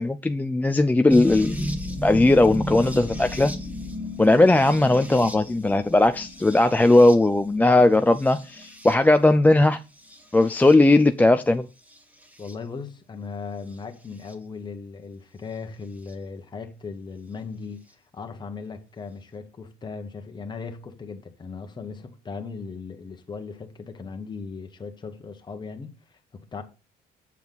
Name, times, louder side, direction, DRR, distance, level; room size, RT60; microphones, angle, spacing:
voice 1, 0.0-3.5 4.2-9.8 10.3-11.7, left 2 dB, 10° left, 0.4 m, -18 dB
sound 1, 1.1-9.2 10.0-10.7 11.9-12.5 14.3-14.4 16.1-16.2, equal, 10° right, 1.6 m, -34 dB
voice 2, 12.4-25.9 26.3-26.6, left 4 dB, 25° left, 1.4 m, -37 dB
7.2 x 7.0 x 4.0 m
cardioid pair, 110°, 17 cm